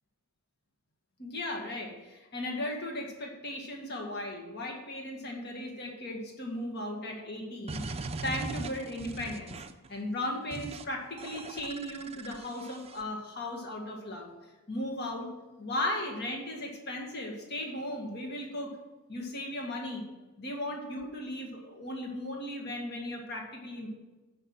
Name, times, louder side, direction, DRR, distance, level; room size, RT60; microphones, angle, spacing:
voice 1, 1.2-9.6 9.9-14.3 14.7-15.3 15.6-18.7 19.1-20.1 20.4-23.9, left 1 dB, 50° left, 1 dB, 1.8 m, -36 dB
sound 1, 7.7-9.9 10.5-10.8 11.2-13.0, right 3 dB, 30° right, 0.5 m, -40 dB
10.5 x 5.5 x 6.1 m, 1.1 s
head